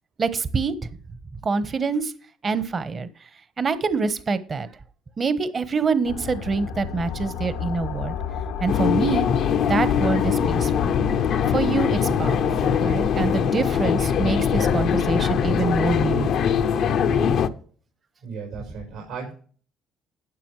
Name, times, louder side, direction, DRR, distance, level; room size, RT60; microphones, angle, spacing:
voice 1, 0.2-0.7 1.4-2.1 2.4-3.1 3.6-4.7 5.2-8.1 8.6-9.3 9.7-10.7 11.5-16.5, right 4 dB, 40° right, 13 dB, 1.2 m, -25 dB
sound 1, 6.0-16.2, left 7 dB, 90° left, 1.2 m, -31 dB
sound 2, 8.7-17.5, left 7 dB, 65° left, 0.8 m, -22 dB
voice 2, 18.2-19.3, right 5 dB, 85° right, -3 dB, 4.6 m, -35 dB
12.0 x 8.9 x 3.3 m, 0.41 s
supercardioid pair, 60°, 0 cm